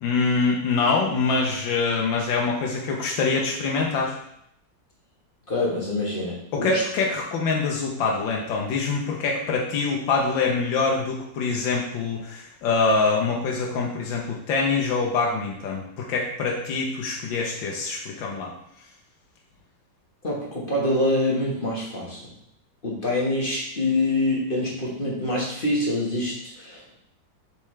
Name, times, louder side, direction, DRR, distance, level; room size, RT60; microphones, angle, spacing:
voice 1, 0.0-4.2 6.5-18.5, left 4 dB, 80° left, -1 dB, 1.6 m, -24 dB
voice 2, 5.5-6.8 20.2-22.2 22.8-27.0, left 1 dB, 30° left, -4 dB, 1.4 m, -25 dB
7.0 x 4.5 x 3.2 m, 0.74 s
omnidirectional pair, 2.1 m